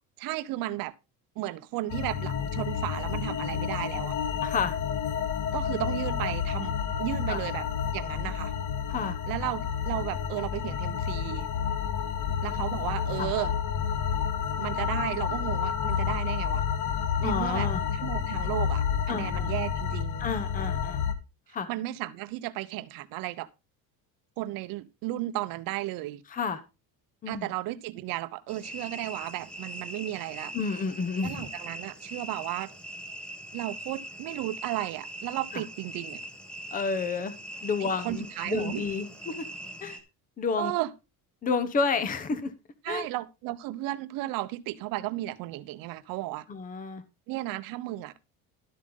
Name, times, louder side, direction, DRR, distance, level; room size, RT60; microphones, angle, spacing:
voice 1, 0.2-0.9 1.4-4.1 5.5-6.7 7.0-7.7 7.9-8.5 9.3-11.5 12.4-13.6 14.6-16.6 17.2-20.3 21.7-23.5 24.4-26.2 27.3-30.5 31.2-32.7 33.5-36.2 37.8-38.9 40.6-40.9 42.8-46.4 47.3-48.1, right 16 dB, 60° right, 0.9 m, -34 dB
sound 1, 1.9-21.1, left 8 dB, 50° left, 1.2 m, -30 dB
voice 2, 4.4-4.7 7.3-7.4 8.9-9.2 13.2-13.3 17.2-17.8 19.1-19.5 20.2-21.0 21.5-21.7 26.3-26.6 27.2-27.5 30.5-31.5 35.5-35.6 36.7-37.3 37.6-39.4 39.8-40.0 40.4-40.7 41.4-42.5 42.9-43.1 46.5-47.0, left 5 dB, 20° left, 0.9 m, -30 dB
sound 2, 28.5-40.0, right 1 dB, 5° left, 1.4 m, -41 dB
12.5 x 7.4 x 3.9 m
cardioid pair, 165°, 38 cm